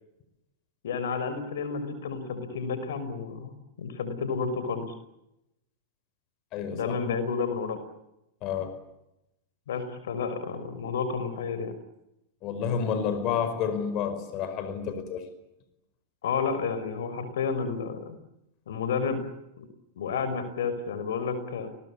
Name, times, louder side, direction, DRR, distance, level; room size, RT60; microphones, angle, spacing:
voice 1, 0.8-4.9 6.7-7.8 9.7-11.7 16.2-18.2 18.7-19.2 19.6-19.7 20.0-21.7, left 5 dB, 75° left, 11 dB, 5.6 m, -31 dB
voice 2, 6.5-7.0 8.4-8.8 12.4-15.2, left 7 dB, 45° left, 10 dB, 5.1 m, -30 dB
28.5 x 21.0 x 8.7 m, 0.87 s
hypercardioid pair, 110°, 0 cm